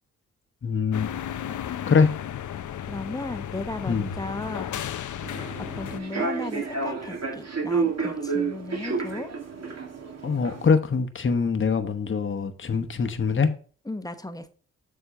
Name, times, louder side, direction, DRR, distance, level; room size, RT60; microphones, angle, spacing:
voice 1, 0.6-1.1 1.9-2.1 3.9-4.1 10.2-13.5, left 5 dB, 35° left, 1.1 m, -23 dB
sound 1, 0.9-6.0, left 10 dB, 55° left, 0.6 m, -34 dB
voice 2, 2.8-4.8 5.2-9.3 13.8-14.5, left 2 dB, 10° left, 1.0 m, -36 dB
Human voice / Subway metro underground, 5.2-10.7, right 4 dB, 45° right, 1.9 m, -30 dB
7.1 x 3.7 x 5.6 m
supercardioid pair, 50°, 35 cm